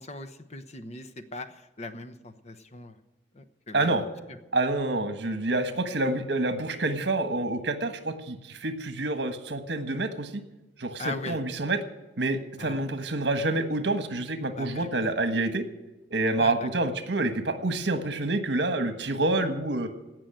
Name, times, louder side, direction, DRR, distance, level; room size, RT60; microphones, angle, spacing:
voice 1, 0.0-3.0 3.3-4.0 5.7-5.8 11.0-11.4 12.6-12.8 14.6-14.9 16.4-16.7, left 2 dB, 40° left, 8 dB, 0.9 m, -39 dB
voice 2, 3.7-4.0 4.5-10.3 10.8-11.8 12.2-15.6 16.1-19.9, right 2 dB, 70° right, 9 dB, 1.4 m, -27 dB
17.0 x 6.2 x 8.9 m, 1.0 s
head